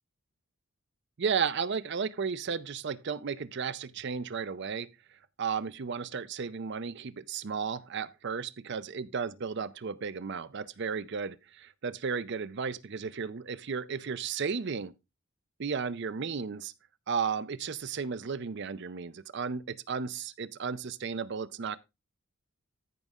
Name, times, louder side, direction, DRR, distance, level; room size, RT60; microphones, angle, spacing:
voice 1, 1.2-4.9 5.4-14.9 15.6-16.7 17.1-21.8, right 6 dB, 50° right, 0.5 m, -34 dB
14.0 x 5.3 x 3.6 m
head